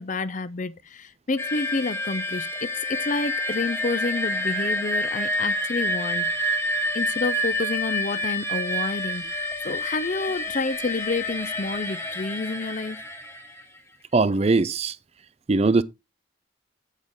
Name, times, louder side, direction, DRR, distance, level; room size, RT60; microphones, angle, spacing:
voice 1, 0.0-6.7 6.9-13.0, left 3 dB, 40° left, 0.6 m, -29 dB
sound 1, 1.4-13.8, left 3 dB, 15° left, 1.1 m, -29 dB
sound 2, 3.6-9.9 10.2-10.5, right 13 dB, 55° right, 2.0 m, -33 dB
voice 2, 14.1-14.9 15.5-15.8, right 3 dB, 35° right, 0.5 m, -20 dB
8.2 x 8.1 x 3.6 m
head